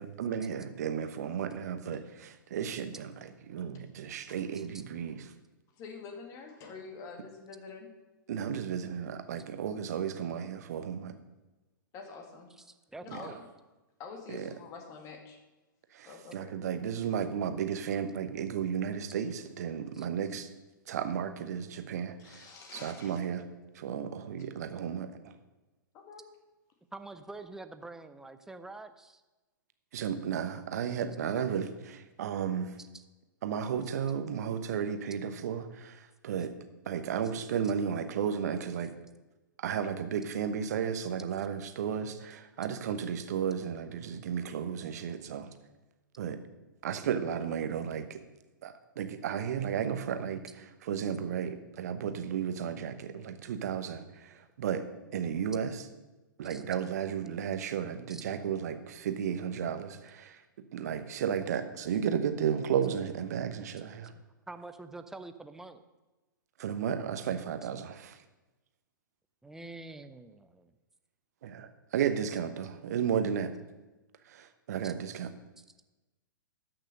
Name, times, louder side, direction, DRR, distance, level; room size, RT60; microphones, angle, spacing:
voice 1, 0.0-3.1 3.5-5.3 8.3-11.1 13.1-13.2 14.3-14.5 15.9-20.5 20.9-23.4 23.7-25.3 29.9-32.7 33.4-36.5 36.8-38.9 39.6-45.5 46.2-46.4 46.8-48.2 48.6-50.4 50.8-54.8 55.1-55.8 56.4-60.4 60.7-64.1 66.6-68.2 71.4-73.5 74.3-75.3, right 8 dB, 50° right, 9 dB, 1.0 m, -33 dB
voice 2, 5.8-7.9 11.9-12.5 13.0-13.5 14.0-15.4 16.1-16.5 22.2-23.2 25.9-26.2, left 4 dB, 30° left, 4 dB, 2.1 m, -46 dB
voice 3, 12.9-13.4 19.9-20.1 26.9-29.2 32.8-33.0 56.5-56.6 58.1-58.2 64.1-65.8 69.4-70.7 74.8-74.9 75.6-75.7, right 2 dB, 5° right, 9 dB, 0.6 m, -46 dB
13.0 x 6.1 x 6.6 m, 1.1 s
figure-of-eight pair, 105°, 11 cm